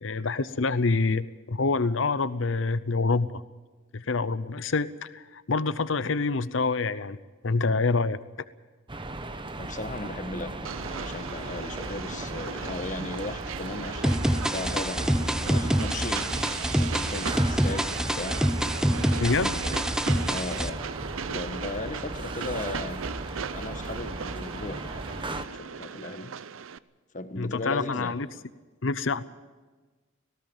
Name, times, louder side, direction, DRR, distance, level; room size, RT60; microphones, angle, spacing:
voice 1, 0.0-3.4 3.9-8.2 19.2-19.6 27.4-28.3 28.8-29.2, left 3 dB, 65° left, 15 dB, 0.7 m, -26 dB
sound 1, 8.9-25.5, right 2 dB, 25° right, 1.1 m, -37 dB
voice 2, 9.6-16.3 16.7-18.4 19.4-19.8 20.3-20.8 21.3-23.0 23.5-26.3 27.1-28.2, left 2 dB, 40° left, 10 dB, 1.3 m, -37 dB
Train, 10.6-26.8, right 6 dB, 80° right, 0.6 m, -38 dB
sound 2, 14.0-20.7, equal, 5° right, 0.7 m, -26 dB
18.5 x 17.0 x 9.0 m, 1.3 s
head